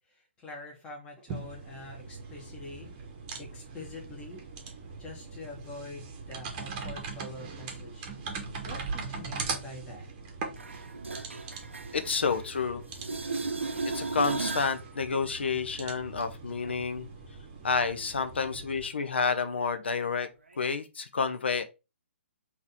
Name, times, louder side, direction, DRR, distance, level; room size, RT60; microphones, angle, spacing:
voice 1, 0.1-2.9 3.4-4.4 5.0-8.1 8.6-10.1, left 2 dB, 15° left, 1.3 m, -45 dB
sound 1, 1.3-18.9, right 4 dB, 25° right, 1.0 m, -41 dB
sound 2, 10.6-12.6 12.9-14.8 20.5-20.6, right 3 dB, 75° right, 0.7 m, -35 dB
voice 2, 11.9-12.8 13.8-17.1 17.6-20.3 20.6-21.6, left 5 dB, 60° left, 0.6 m, -29 dB
3.9 x 2.9 x 4.0 m
figure-of-eight pair, 130°, 7 cm